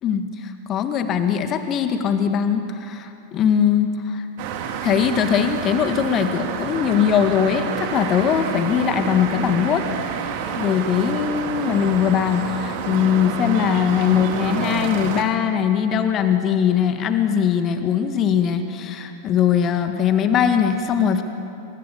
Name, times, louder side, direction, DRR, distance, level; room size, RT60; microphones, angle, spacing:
voice 1, 0.0-4.2 4.8-9.9 10.6-21.2, left 8 dB, 30° left, 7 dB, 1.9 m, -21 dB
sound 1, 4.4-15.2, right 7 dB, 45° right, 2.6 m, -29 dB
28.0 x 24.5 x 7.2 m, 2.7 s
figure-of-eight pair, 90°, 0 cm